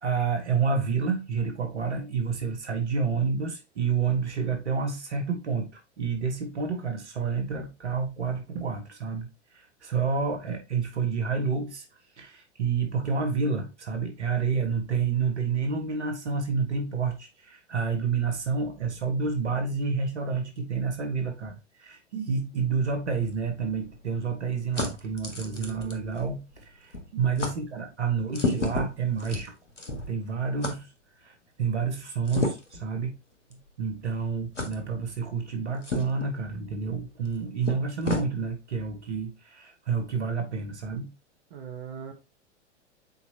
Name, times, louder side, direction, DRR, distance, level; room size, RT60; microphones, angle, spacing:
voice 1, 0.0-11.9 12.1-29.5 30.1-30.9 31.2-33.1 33.5-41.1, right 5 dB, 70° right, 1.4 m, -29 dB
sound 1, 23.2-26.7 26.9-27.1 27.4-27.6 28.3-30.2 30.6-30.8 32.2-32.8 33.5-33.6 34.5-34.8 35.8-36.3 37.2-37.3 37.6-38.3, left 3 dB, 75° left, 1.6 m, -32 dB
voice 2, 25.5-26.2 41.5-42.1, right 7 dB, 55° right, 1.4 m, -40 dB
8.0 x 4.3 x 2.9 m
figure-of-eight pair, 95°, 36 cm